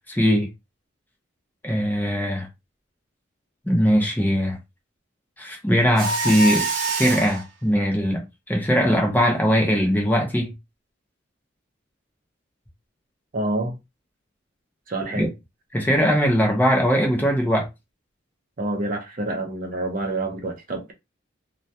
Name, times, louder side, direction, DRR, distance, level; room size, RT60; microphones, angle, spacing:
voice 1, 0.1-0.5 1.6-2.5 3.7-4.6 5.4-10.5 15.2-15.3 15.7-17.7, equal, 10° left, 0.6 m, -20 dB
Mechanisms, 6.0-7.4, right 3 dB, 85° right, 0.8 m, -25 dB
voice 2, 13.3-13.8 14.9-15.3 18.6-20.9, right 2 dB, 45° right, 0.5 m, -27 dB
2.2 x 2.2 x 2.7 m
head